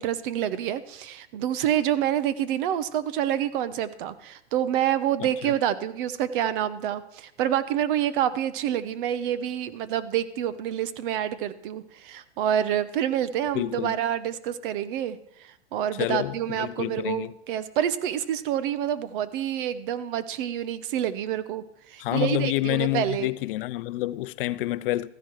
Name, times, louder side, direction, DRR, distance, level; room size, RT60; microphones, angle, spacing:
voice 1, 0.0-23.3, right 10 dB, 50° right, 0.9 m, -27 dB
voice 2, 5.2-5.6 13.5-13.9 16.0-17.3 22.0-25.1, left 16 dB, 50° left, 0.6 m, -28 dB
14.0 x 10.5 x 4.6 m
hypercardioid pair, 125°, 34 cm